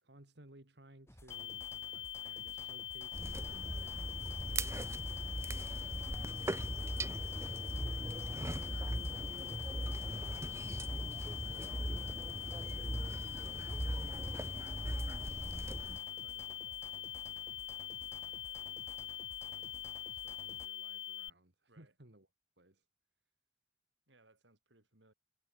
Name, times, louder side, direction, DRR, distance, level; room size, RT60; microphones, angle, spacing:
voice 1, 0.0-4.0 4.4-5.4 5.7-6.0 7.4-15.1 15.8-19.1 19.4-19.7 20.1-22.3 22.6-22.9, right 1 dB, 65° right, 2.9 m, -63 dB
sound 1, 1.1-20.7, left 1 dB, 15° left, 3.1 m, -57 dB
sound 2, 1.3-21.3, left 12 dB, 65° left, 1.4 m, -43 dB
sound 3, 3.1-16.0, right 1 dB, 15° right, 0.6 m, -39 dB
voice 2, 5.8-6.5 21.7-21.9 24.1-25.1, right 2 dB, 80° right, 6.3 m, -67 dB
head